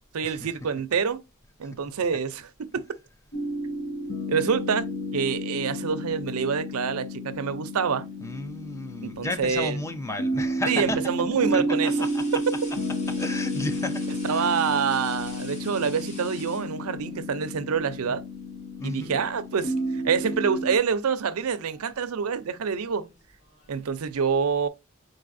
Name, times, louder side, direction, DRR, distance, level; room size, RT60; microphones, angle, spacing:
voice 1, 0.1-1.2 1.6-2.8 4.3-4.9 5.1-8.1 9.0-9.8 10.7-12.1 14.2-18.2 18.8-23.1 23.7-24.7, right 6 dB, 75° right, 0.5 m, -26 dB
sound 1, 3.3-20.8, equal, 60° left, 0.9 m, -31 dB
sound 2, 7.4-8.3 10.0-10.2 11.7-17.2 18.4-18.6 19.0-19.8 20.0-20.4 21.3-23.9, left 2 dB, 35° left, 1.3 m, -48 dB
voice 2, 8.2-11.1 11.5-12.4 13.1-14.6 18.8-19.2, left 1 dB, 15° left, 0.4 m, -33 dB
4.7 x 3.9 x 2.5 m
head